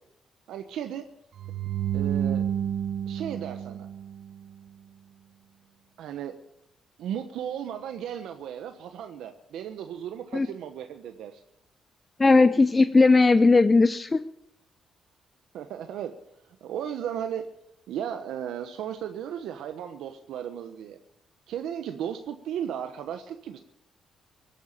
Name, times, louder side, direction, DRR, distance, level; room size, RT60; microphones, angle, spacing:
voice 1, 0.5-1.1 1.9-2.5 3.1-3.9 6.0-6.4 7.0-11.4 15.5-16.1 16.6-17.5 17.9-21.0 21.5-23.6, right 9 dB, 80° right, 7 dB, 1.1 m, -35 dB
sound 1, 1.3-4.5, right 9 dB, 55° right, 1.3 m, -30 dB
voice 2, 12.2-14.2, left 3 dB, 25° left, 12 dB, 0.6 m, -18 dB
17.5 x 9.2 x 8.9 m, 0.76 s
cardioid pair, 90°, 0 cm